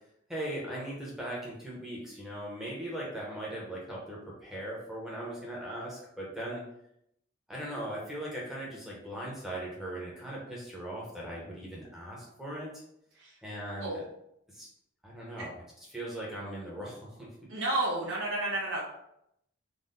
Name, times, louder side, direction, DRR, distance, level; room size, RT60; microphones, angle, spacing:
voice 1, 0.3-6.6 7.5-12.8 13.4-13.9 14.5-14.7 15.0-15.6 15.9-17.6, right 1 dB, ahead, -5 dB, 1.0 m, -39 dB
voice 2, 17.5-18.8, right 2 dB, 65° right, -4 dB, 0.7 m, -31 dB
4.1 x 2.4 x 3.8 m, 0.76 s
head